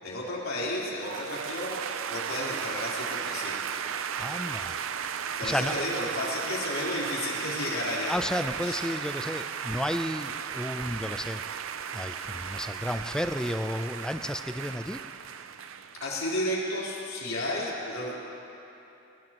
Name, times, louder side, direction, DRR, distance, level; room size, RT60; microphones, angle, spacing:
voice 1, 0.0-3.6 5.4-8.1 8.6-8.8 16.0-18.1, left 1 dB, 90° left, -6 dB, 4.1 m, -32 dB
sound 1, 1.0-16.5, right 7 dB, 75° right, 0.5 m, -35 dB
voice 2, 4.2-4.8 5.4-5.7 8.1-11.6 11.9-15.0, equal, 5° left, 9 dB, 0.5 m, -32 dB
21.0 x 20.0 x 3.0 m, 3.0 s
head